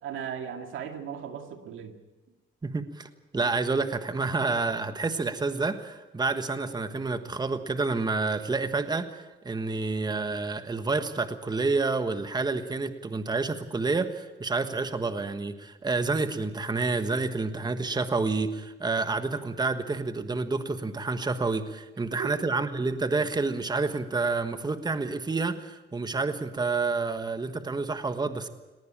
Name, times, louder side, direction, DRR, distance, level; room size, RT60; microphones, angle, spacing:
voice 1, 0.0-2.0 22.2-22.5, right 8 dB, 80° right, 6 dB, 2.1 m, -37 dB
voice 2, 2.6-28.5, right 3 dB, 20° right, 9 dB, 1.4 m, -29 dB
19.0 x 18.5 x 8.9 m, 1.1 s
cardioid pair, 90°, 20 cm